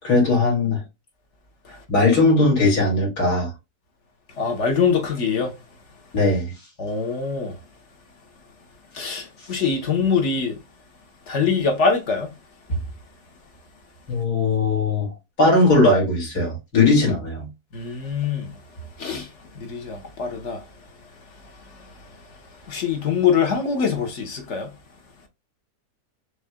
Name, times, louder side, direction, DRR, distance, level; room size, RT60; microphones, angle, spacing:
voice 1, 0.0-0.8 1.7-3.5 6.1-6.5 14.1-17.5, left 2 dB, 75° left, 2.9 m, -19 dB
voice 2, 4.3-5.5 6.8-7.6 8.9-10.6 11.3-12.3 12.7-12.8 17.7-18.5 19.0-20.7 21.7-24.7, left 5 dB, 50° left, 1.3 m, -24 dB
5.9 x 3.2 x 2.2 m
omnidirectional pair, 1.7 m